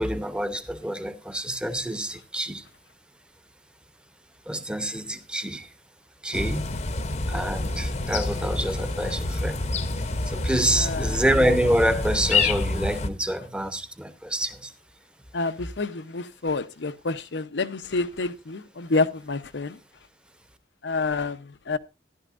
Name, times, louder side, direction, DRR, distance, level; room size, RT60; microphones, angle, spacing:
voice 1, 0.0-2.6 4.5-5.7 6.2-6.7 7.3-9.6 10.2-14.7, right 1 dB, 5° right, 0.8 m, -27 dB
sound 1, 6.3-13.1, left 3 dB, 40° left, 0.8 m, -27 dB
voice 2, 10.7-11.2 15.3-19.8 20.8-21.8, left 3 dB, 85° left, 0.8 m, -28 dB
14.5 x 11.5 x 2.5 m
head